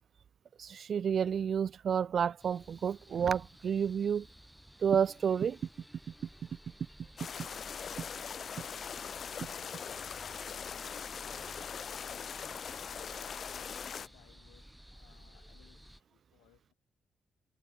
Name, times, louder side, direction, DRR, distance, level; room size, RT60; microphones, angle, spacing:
voice 1, 0.6-4.3 4.8-5.6, right 7 dB, 60° right, 0.5 m, -30 dB
sound 1, 2.4-16.0, equal, 5° right, 5.7 m, -55 dB
Guitar, 4.9-11.6, left 2 dB, 20° left, 5.2 m, -66 dB
sound 2, 7.2-14.1, left 7 dB, 55° left, 1.4 m, -41 dB
voice 2, 9.3-16.7, left 24 dB, 85° left, 4.9 m, -64 dB
hypercardioid pair, 45°, 0 cm